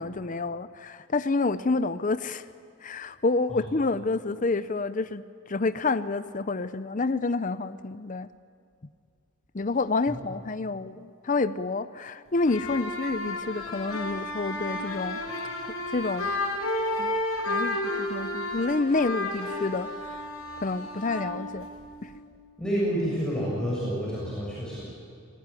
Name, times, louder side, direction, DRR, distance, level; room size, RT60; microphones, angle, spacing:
voice 1, 0.0-2.4 2.8-8.3 9.5-15.2 15.9-16.3 17.0-17.1 17.5-20.2 20.6-21.7 22.0-22.1, left 3 dB, 35° left, 12 dB, 0.6 m, -28 dB
sound 1, 12.4-22.2, left 1 dB, 75° left, 6.2 m, -32 dB
voice 2, 22.6-24.8, equal, 5° left, -7 dB, 7.0 m, -29 dB
28.0 x 19.0 x 9.8 m, 2.4 s
head